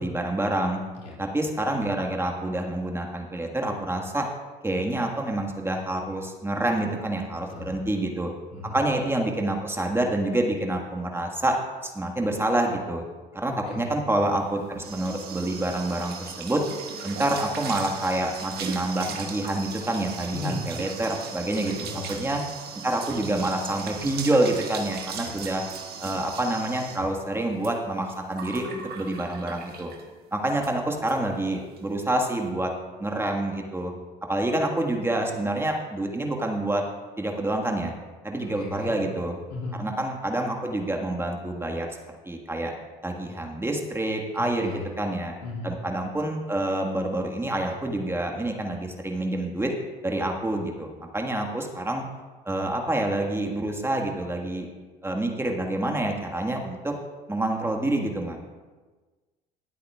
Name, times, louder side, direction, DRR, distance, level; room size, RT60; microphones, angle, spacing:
voice 1, 0.0-0.8 1.2-4.3 4.6-8.3 8.7-11.6 11.8-13.0 13.3-16.6 17.0-22.4 22.8-25.6 26.0-29.9 30.3-32.7 33.0-33.9 34.3-36.8 37.2-37.9 38.2-39.4 39.8-41.9 42.2-42.7 43.0-45.3 45.6-49.7 50.0-52.0 52.4-54.7 55.0-56.9 57.3-58.4, right 1 dB, 10° right, 1 dB, 1.6 m, -27 dB
voice 2, 7.5-7.8 8.5-8.7 13.7-13.9 20.3-20.6 21.8-22.2 25.1-25.3 38.6-38.9 39.5-39.8 44.6-44.9 45.4-45.7, left 3 dB, 80° left, -4 dB, 2.4 m, -35 dB
sound 1, 14.4-30.1 30.5-30.7 31.1-31.2 31.5-31.8, right 6 dB, 50° right, 1.6 m, -38 dB
19.5 x 8.2 x 2.4 m, 1.3 s
hypercardioid pair, 65°, 20 cm